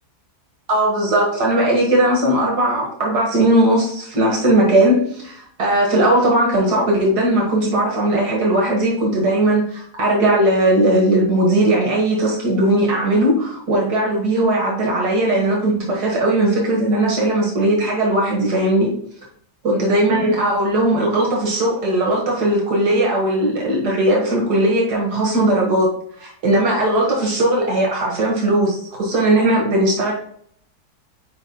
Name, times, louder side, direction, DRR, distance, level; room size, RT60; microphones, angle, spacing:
voice 1, 0.7-18.9 19.6-25.9 26.2-30.1, right 1 dB, 75° right, -2 dB, 2.0 m, -18 dB
8.2 x 5.3 x 2.2 m, 0.65 s
omnidirectional pair, 1.7 m